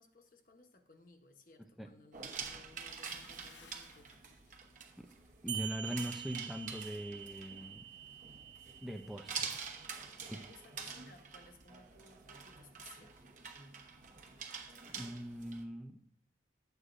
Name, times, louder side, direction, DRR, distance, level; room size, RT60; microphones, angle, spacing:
voice 1, 0.0-4.2 8.2-8.4 10.1-13.3, left 3 dB, 50° left, 5 dB, 1.0 m, -60 dB
sound 1, 2.1-15.6, right 6 dB, 45° right, 1.0 m, -47 dB
Bathtub (filling or washing) / Splash splatter, 2.9-5.3 5.6-5.9, left 6 dB, 80° left, 0.9 m, -60 dB
voice 2, 5.4-7.8 8.8-9.6 14.9-16.0, equal, ahead, 4 dB, 0.5 m, -41 dB
sound 2, 5.5-10.5, right 10 dB, 75° right, 0.4 m, -46 dB
12.0 x 8.1 x 2.5 m, 0.62 s
head